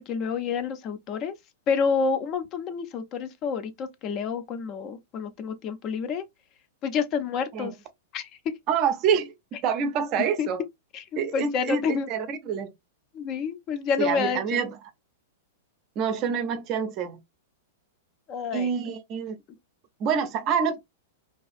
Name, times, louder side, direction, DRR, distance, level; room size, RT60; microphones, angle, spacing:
voice 1, 0.0-1.3 1.7-6.2 6.8-7.7 8.1-8.3 10.4-10.5 10.9-11.0 11.3-12.1 13.1-14.6 18.3-18.7, left 6 dB, 35° left, 0.5 m, -28 dB
voice 2, 8.7-10.6 11.2-12.7 14.0-14.8 16.0-17.2 18.5-19.4 20.0-20.8, right 7 dB, 40° right, 0.5 m, -27 dB
2.4 x 2.4 x 2.4 m
hypercardioid pair, 105°, 0 cm